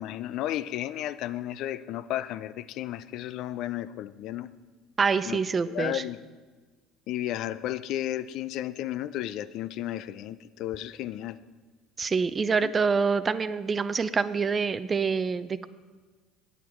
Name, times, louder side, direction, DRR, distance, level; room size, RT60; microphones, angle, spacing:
voice 1, 0.0-4.5 5.3-5.4 5.7-6.2 7.1-11.4 12.6-12.7, left 13 dB, 65° left, 0.3 m, -33 dB
voice 2, 5.0-6.0 12.0-15.7, right 5 dB, 30° right, 0.4 m, -26 dB
9.2 x 8.4 x 4.4 m
supercardioid pair, 80°, 0 cm